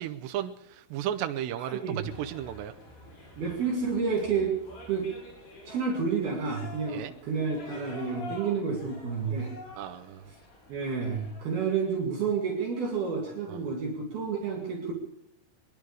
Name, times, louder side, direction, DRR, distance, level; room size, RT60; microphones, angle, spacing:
voice 1, 0.0-1.8 2.2-2.7 6.9-7.1 9.8-10.2 13.5-13.6, right 11 dB, 80° right, 7 dB, 2.6 m, -34 dB
voice 2, 1.6-2.0 3.4-4.6 4.9-5.1 5.7-9.5 10.7-14.9, right 5 dB, 55° right, -2 dB, 3.8 m, -30 dB
sound 1, 2.0-11.4, left 2 dB, 75° left, 9.1 m, -47 dB
25.5 x 11.0 x 4.9 m, 0.79 s
omnidirectional pair, 5.6 m